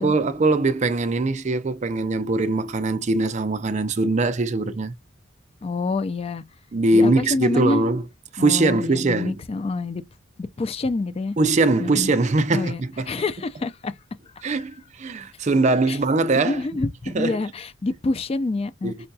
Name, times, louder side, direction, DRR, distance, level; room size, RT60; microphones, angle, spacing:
voice 1, 0.0-4.9 6.7-8.0 8.3-9.3 11.4-13.1 14.4-16.6 17.1-17.4 18.8-19.1, right 2 dB, 35° right, 0.4 m, -21 dB
voice 2, 5.6-6.4 6.9-7.8 8.4-10.0 10.4-11.4 11.8-12.1 12.5-14.0 14.2-14.5 15.9-16.0 16.4-19.1, left 3 dB, 30° left, 0.3 m, -27 dB
5.4 x 2.2 x 2.6 m
head